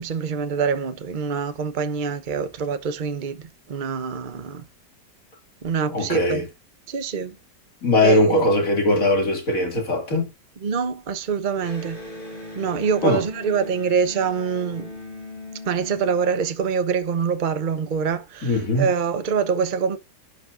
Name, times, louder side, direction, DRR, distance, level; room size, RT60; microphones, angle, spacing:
voice 1, 0.0-4.7 5.6-6.4 6.9-7.4 8.0-8.5 10.6-12.0 12.5-14.9 15.7-20.0, right 6 dB, 35° right, 0.9 m, -25 dB
voice 2, 5.9-6.5 7.8-10.3 13.0-13.2 18.4-18.9, left 1 dB, 50° left, 2.9 m, -20 dB
Electric guitar, 11.6-17.1, left 2 dB, 30° left, 2.4 m, -39 dB
11.5 x 5.2 x 2.5 m
omnidirectional pair, 1.8 m